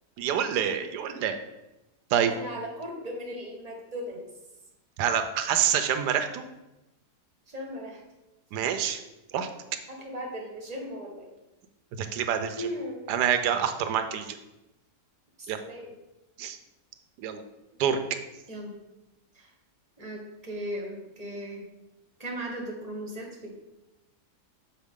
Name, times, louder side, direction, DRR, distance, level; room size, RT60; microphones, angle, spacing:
voice 1, 0.2-1.4 2.1-2.3 5.0-6.4 8.5-9.0 9.3-9.5 12.0-12.7 13.1-14.4 15.5-15.6 16.4-16.6 17.2-17.4 17.8-18.0, right 8 dB, 85° right, 8 dB, 1.2 m, -27 dB
voice 2, 2.3-4.2 7.5-8.0 9.9-11.3 12.6-13.1 15.4-15.9 18.5-18.8 19.3-19.5 20.0-21.6 22.2-23.5, equal, 25° right, 0 dB, 1.1 m, -37 dB
6.6 x 4.7 x 3.6 m, 0.97 s
omnidirectional pair, 1.7 m